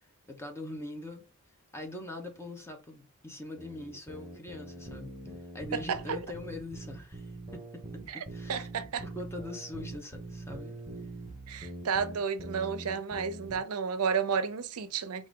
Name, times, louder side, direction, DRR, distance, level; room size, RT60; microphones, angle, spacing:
voice 1, 0.3-1.2 1.7-5.1 5.5-8.7 9.0-10.8, left 2 dB, 10° left, 0.9 m, -42 dB
sound 1, 3.5-13.6, right 2 dB, 20° right, 1.0 m, -43 dB
voice 2, 8.5-9.0 11.5-15.3, right 6 dB, 75° right, 0.6 m, -32 dB
4.7 x 2.6 x 3.7 m
head